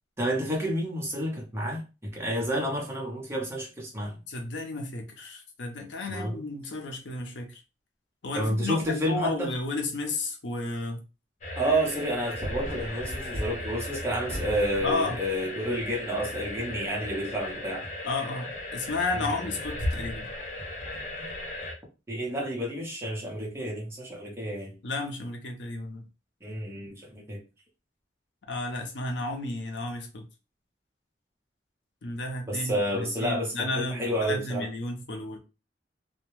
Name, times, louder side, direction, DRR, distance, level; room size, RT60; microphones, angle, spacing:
voice 1, 0.2-4.2 6.1-6.4 8.3-9.5 11.6-17.9 19.1-19.5 22.1-24.8 26.4-27.4 32.5-34.7, equal, 15° right, 0.7 m, -30 dB
voice 2, 4.3-7.6 8.2-11.0 14.8-15.2 18.0-20.3 24.8-26.0 28.5-30.3 32.0-35.4, left 2 dB, 85° left, 0.6 m, -32 dB
sound 1, 11.4-21.7, left 1 dB, 45° left, 0.7 m, -36 dB
2.2 x 2.1 x 3.0 m
head